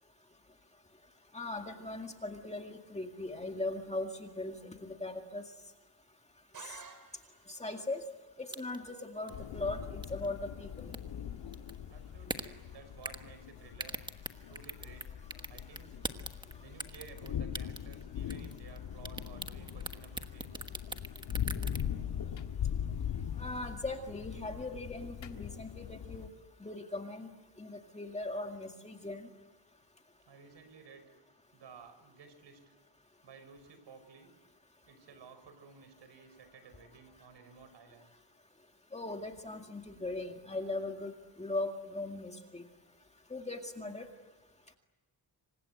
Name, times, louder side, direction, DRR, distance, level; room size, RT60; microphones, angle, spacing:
voice 1, 1.3-5.4 6.7-6.8 7.5-8.0 8.4-10.9 23.4-26.3 26.6-27.3 27.6-29.3 38.9-42.6 43.3-44.1, left 2 dB, 15° left, 4 dB, 2.1 m, -39 dB
sound 1, 6.5-7.6, right 6 dB, 50° right, 4.8 m, -51 dB
sound 2, 8.5-8.9 9.3-9.4 10.0-10.3 10.8-11.0 11.5-11.8 12.3-12.5 13.0-13.3 13.7-15.0 15.3-16.5 16.8-17.3 17.5-18.0 18.3-18.8 19.0-21.8, right 2 dB, 10° right, 1.3 m, -39 dB
sound 3, 9.3-26.3, left 9 dB, 80° left, 1.9 m, -41 dB
voice 2, 11.9-14.0 14.5-15.1 15.5-16.0 16.6-20.7 30.2-31.0 31.5-32.6 33.2-34.3 34.8-38.1, right 5 dB, 70° right, 9 dB, 5.7 m, -54 dB
27.5 x 25.5 x 7.9 m, 1.2 s
wide cardioid pair, 160°, 44 cm